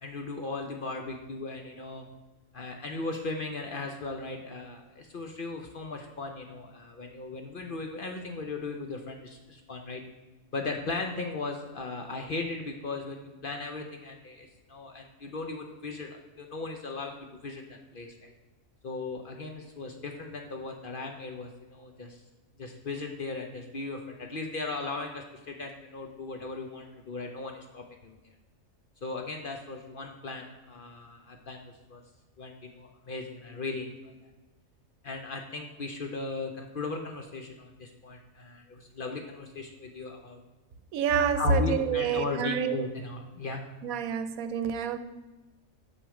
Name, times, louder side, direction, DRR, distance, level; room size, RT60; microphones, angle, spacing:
voice 1, 0.0-2.1 2.5-10.0 10.5-18.3 18.8-22.2 22.6-28.2 29.0-31.6 31.9-32.0 32.4-34.1 35.0-40.4 41.3-43.6, left 3 dB, 50° left, 3 dB, 0.7 m, -37 dB
voice 2, 40.9-42.9 43.8-45.0, right 5 dB, 85° right, 10 dB, 1.0 m, -27 dB
6.3 x 6.2 x 4.8 m, 1.1 s
omnidirectional pair, 1.4 m